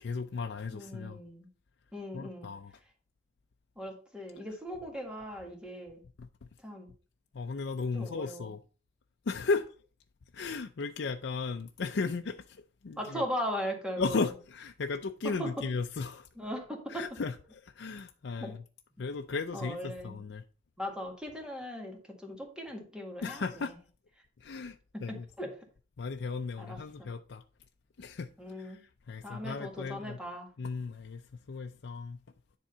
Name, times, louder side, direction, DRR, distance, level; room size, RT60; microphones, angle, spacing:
voice 1, 0.0-1.2 2.1-2.7 6.2-6.3 7.3-8.6 9.3-9.7 10.3-13.2 14.0-16.3 16.9-18.6 19.0-20.4 23.2-23.8 24.4-25.3 26.0-27.4 28.0-28.3 28.6-30.2 30.6-31.2 31.5-32.2, left 4 dB, 70° left, 0.5 m, -35 dB
voice 2, 0.7-1.5 1.9-2.5 3.8-6.0 6.6-6.9 7.9-8.5 13.0-14.3 15.4-15.5 16.4-17.0 18.4-18.5 19.5-20.2 20.8-23.8 24.9-25.5 26.6-27.1 28.4-28.8 29.2-30.5, equal, 5° right, 1.8 m, -39 dB
10.0 x 3.7 x 5.5 m
head